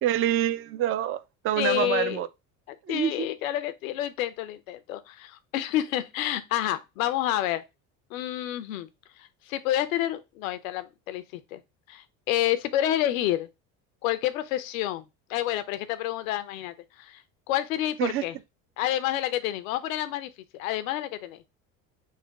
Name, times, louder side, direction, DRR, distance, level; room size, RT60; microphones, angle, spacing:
voice 1, 0.0-2.3 2.9-3.3 18.0-18.2, right 11 dB, 35° right, 0.4 m, -26 dB
voice 2, 1.6-2.2 2.7-7.6 8.1-8.9 9.2-11.6 11.9-13.5 14.0-17.2 17.5-18.3 18.8-21.4, left 13 dB, 85° left, 0.6 m, -29 dB
4.1 x 2.2 x 4.5 m
supercardioid pair, 85°, 39 cm